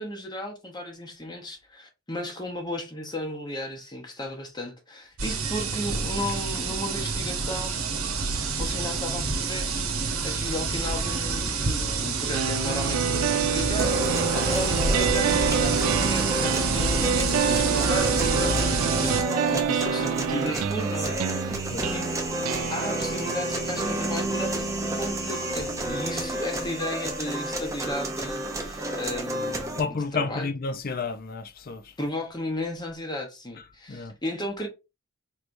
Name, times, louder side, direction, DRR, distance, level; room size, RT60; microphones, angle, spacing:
voice 1, 0.0-7.7 8.6-9.9 10.2-14.0 14.3-21.6 21.9-22.1 22.7-29.8 30.2-30.5 32.0-34.7, left 1 dB, 20° left, 0.9 m, -34 dB
sound 1, 5.2-19.2, right 4 dB, 75° right, 1.0 m, -27 dB
sound 2, 12.3-26.3, right 7 dB, 90° right, 0.4 m, -29 dB
sound 3, 13.8-29.8, right 1 dB, 15° right, 0.6 m, -30 dB
voice 2, 29.8-31.9 33.9-34.2, left 4 dB, 40° left, 0.5 m, -31 dB
4.5 x 3.2 x 2.6 m
head